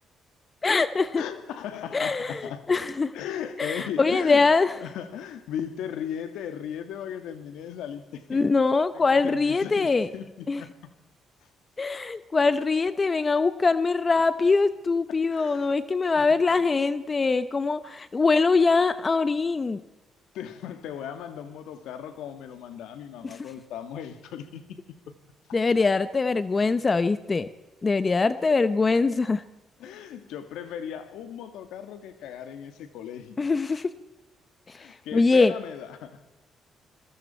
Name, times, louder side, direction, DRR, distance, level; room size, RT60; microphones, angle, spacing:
voice 1, 0.6-1.2 1.9-2.4 2.7-3.1 3.6-4.7 8.3-10.1 10.5-10.6 11.8-19.8 23.4-23.5 25.5-27.5 27.8-29.4 33.4-33.9 35.1-35.5, left 4 dB, 30° left, 13 dB, 0.8 m, -23 dB
voice 2, 1.2-2.6 3.1-8.5 8.9-10.7 15.3-15.7 16.1-16.4 20.3-24.8 29.8-33.4 34.8-36.2, left 9 dB, 90° left, 9 dB, 2.1 m, -37 dB
27.5 x 21.0 x 4.5 m, 1.1 s
cardioid pair, 90°, 0 cm